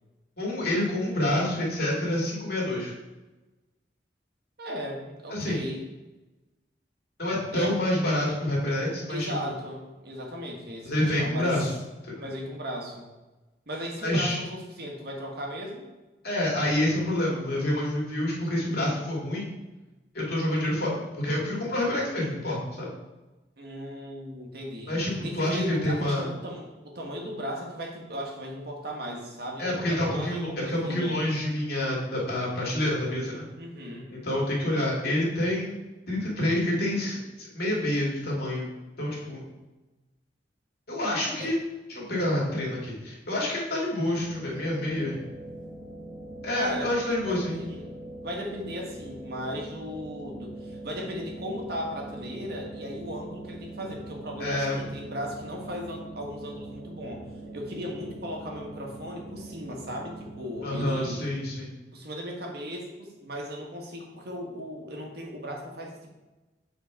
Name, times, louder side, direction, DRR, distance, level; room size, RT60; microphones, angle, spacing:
voice 1, 0.4-2.9 5.3-5.6 7.2-9.5 10.8-11.7 12.1-12.2 14.0-14.4 16.2-19.5 20.1-22.9 24.9-26.3 29.6-33.4 34.1-35.8 36.1-38.7 39.0-39.4 40.9-41.5 41.9-45.2 46.4-47.6 54.4-54.8 60.6-61.7, left 1 dB, 60° left, -4 dB, 2.4 m, -28 dB
voice 2, 4.6-5.8 7.5-7.8 9.1-11.6 12.2-13.1 13.7-15.8 23.6-24.9 25.2-31.1 33.6-34.1 41.4-41.5 46.6-47.0 47.2-47.9 48.2-57.2 57.5-61.3 61.9-66.1, equal, 60° right, 0 dB, 1.6 m, -37 dB
sound 1, 44.2-60.9, right 2 dB, 25° right, 1.7 m, -42 dB
7.3 x 4.4 x 4.7 m, 1.1 s
head